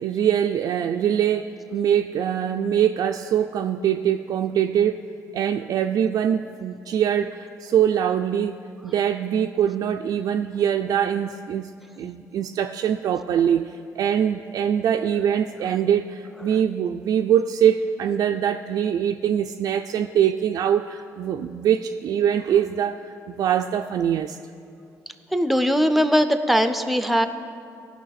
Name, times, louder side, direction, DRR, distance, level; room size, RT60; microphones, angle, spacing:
voice 1, 0.0-5.0 5.3-8.6 8.8-11.7 12.0-24.4, right 9 dB, 60° right, 4 dB, 0.3 m, -23 dB
voice 2, 25.3-27.3, equal, ahead, 9 dB, 0.6 m, -20 dB
17.0 x 5.9 x 4.1 m, 2.5 s
cardioid pair, 100°, 7 cm